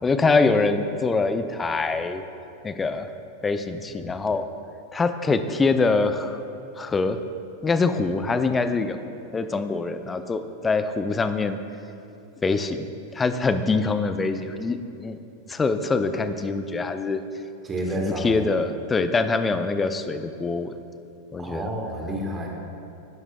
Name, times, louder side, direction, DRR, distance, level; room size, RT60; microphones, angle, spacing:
voice 1, 0.0-2.2 2.6-3.1 3.4-4.5 4.9-6.4 6.8-7.2 7.6-9.0 9.3-11.6 12.4-12.9 13.1-15.2 15.5-17.2 18.0-20.7 21.3-21.7, left 3 dB, 15° left, 9 dB, 0.5 m, -24 dB
voice 2, 17.6-18.4 21.4-22.5, right 1 dB, 20° right, 0 dB, 1.6 m, -30 dB
12.0 x 10.5 x 2.3 m, 2.6 s
figure-of-eight pair, 90°, 0 cm